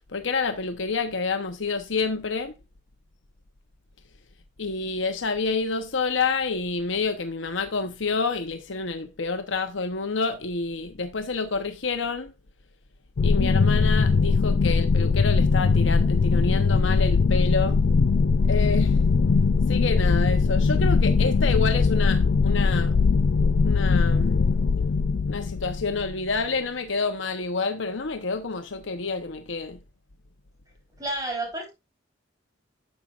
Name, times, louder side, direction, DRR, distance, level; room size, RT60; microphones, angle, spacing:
voice 1, 0.1-2.5 4.6-12.3 13.2-17.8 18.5-19.0 19.7-22.9 23.6-24.5 25.3-29.8, left 4 dB, 70° left, 0.9 m, -28 dB
sound 1, 13.2-26.5, left 4 dB, 55° left, 0.4 m, -21 dB
voice 2, 31.0-31.7, right 2 dB, 20° right, 4.2 m, -30 dB
10.5 x 7.3 x 2.4 m
head